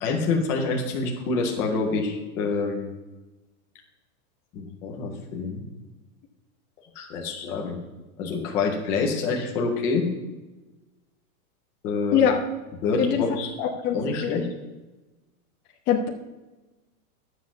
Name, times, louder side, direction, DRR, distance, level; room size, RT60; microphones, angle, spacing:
voice 1, 0.0-2.9 4.5-5.6 7.0-7.8 8.2-10.0 11.8-12.3 12.8-13.6 13.9-14.5, left 4 dB, 5° left, 0 dB, 0.3 m, -27 dB
voice 2, 12.1-12.4 13.0-13.3 13.6-14.4 15.9-16.1, left 8 dB, 25° left, 0 dB, 0.9 m, -23 dB
11.5 x 7.4 x 6.7 m, 1.1 s
supercardioid pair, 160°, 44 cm